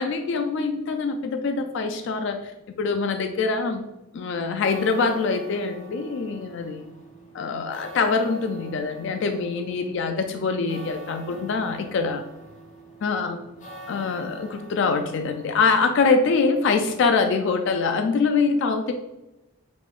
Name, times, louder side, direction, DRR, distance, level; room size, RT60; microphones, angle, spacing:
voice 1, 0.0-2.5 2.8-3.8 4.1-6.9 7.3-12.2 13.0-13.4 13.9-18.9, left 4 dB, 60° left, 6 dB, 0.3 m, -24 dB
sound 1, 4.4-18.0, right 1 dB, 35° left, 0.7 m, -45 dB
4.9 x 3.6 x 2.4 m, 0.98 s
head